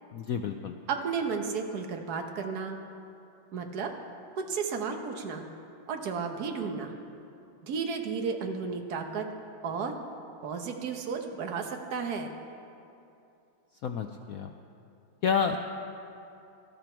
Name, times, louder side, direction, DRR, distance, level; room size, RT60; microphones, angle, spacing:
voice 1, 0.1-0.7 13.8-14.5 15.2-15.7, left 6 dB, 70° left, 5 dB, 0.8 m, -29 dB
voice 2, 0.9-2.8 3.5-3.9 4.4-5.4 5.9-6.9 7.6-9.3 9.6-9.9 10.4-12.3, right 5 dB, 55° right, 4 dB, 1.5 m, -33 dB
19.5 x 12.5 x 4.5 m, 2.7 s
omnidirectional pair, 2.1 m